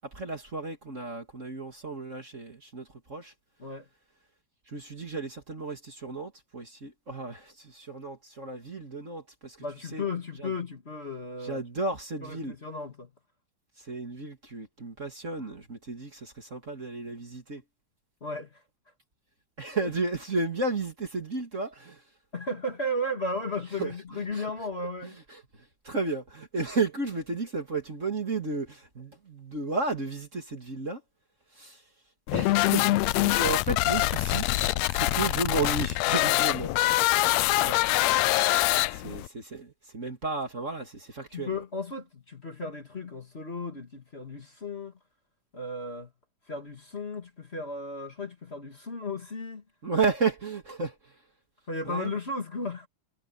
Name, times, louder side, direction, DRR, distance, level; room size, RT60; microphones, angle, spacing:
voice 1, 0.1-3.3 4.7-9.6 9.9-10.0 10.4-10.5 11.4-12.5 13.9-17.6 19.6-22.0 23.8-23.9 24.3-24.4 25.0-25.1 25.8-31.0 31.6-31.8 32.3-34.4 34.9-36.7 39.0-41.5 49.8-50.9 51.9-52.1, right 3 dB, 25° right, 2.2 m, -33 dB
voice 2, 9.6-11.6 12.2-13.1 18.2-18.6 19.8-19.9 22.3-25.2 37.5-37.8 38.7-38.9 41.3-44.9 45.5-46.1 46.5-49.6 51.7-52.9, left 2 dB, 25° left, 1.8 m, -35 dB
sound 1, 32.3-39.3, left 18 dB, 80° left, 1.6 m, -24 dB
omnidirectional pair, 3.5 m